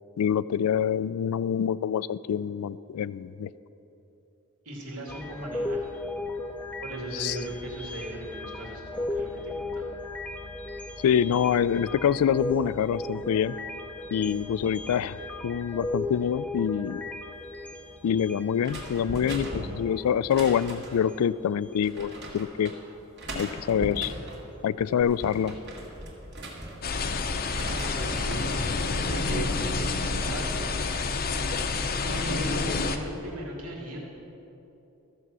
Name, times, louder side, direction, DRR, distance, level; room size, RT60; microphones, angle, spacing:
voice 1, 0.2-3.5 7.1-7.4 11.0-13.6 14.1-15.2 15.4-17.0 18.0-22.7 23.3-24.1 24.6-25.6, left 8 dB, 75° left, 19 dB, 0.3 m, -26 dB
voice 2, 4.6-5.9 6.8-9.9 27.5-29.5 29.8-30.7 32.0-34.0, right 1 dB, 80° right, -2 dB, 2.4 m, -37 dB
sound 1, 5.1-22.3 22.7-23.0 25.0-25.1, left 2 dB, 5° left, 0.5 m, -37 dB
sound 2, 18.6-21.1 21.8-22.8 23.2-24.4 24.9-27.1 27.4-28.5 28.9-29.4, right 1 dB, 50° right, 1.9 m, -39 dB
sound 3, 26.8-33.0, left 4 dB, 45° left, 0.6 m, -28 dB
13.5 x 7.0 x 6.1 m, 2.9 s
head